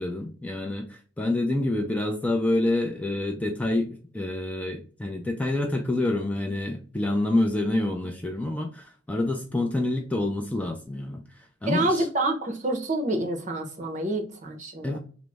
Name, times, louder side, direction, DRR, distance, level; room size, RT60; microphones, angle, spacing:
voice 1, 0.0-12.1 14.8-15.0, left 1 dB, 10° left, 0.3 m, -27 dB
voice 2, 11.7-15.0, right 1 dB, 40° right, 0.7 m, -27 dB
3.1 x 2.0 x 3.3 m
head